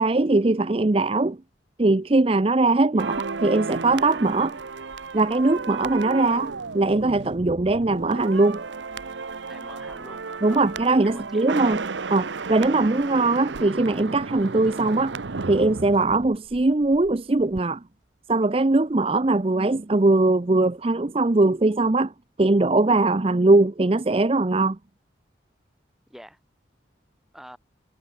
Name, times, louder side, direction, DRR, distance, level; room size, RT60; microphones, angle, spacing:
voice 1, 0.0-1.4 1.8-4.6 5.1-8.6 10.4-11.8 12.1-15.2 15.5-17.8 18.3-22.1 22.4-24.8, right 2 dB, 30° right, 0.5 m, -21 dB
sound 1, 3.0-17.1 17.4-17.6, right 4 dB, 80° right, 0.9 m, -33 dB
voice 2, 9.4-10.2 10.5-10.7 11.0-11.4 26.1-26.4 27.3-27.6, equal, ahead, 3.5 m, -45 dB
head